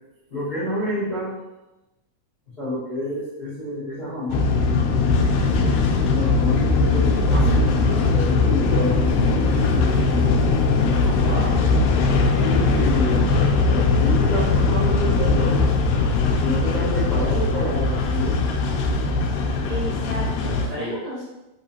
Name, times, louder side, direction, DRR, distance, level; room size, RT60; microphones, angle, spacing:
voice 1, 0.3-1.3 2.6-4.4 5.6-11.6 12.4-15.7 16.4-18.4 20.5-21.0, left 1 dB, 65° left, -12 dB, 0.5 m, -29 dB
sound 1, 4.3-20.7, left 3 dB, 90° left, 2.3 m, -20 dB
voice 2, 19.6-21.2, equal, 65° right, -9 dB, 1.1 m, -33 dB
5.6 x 3.0 x 2.8 m, 0.99 s
omnidirectional pair, 4.0 m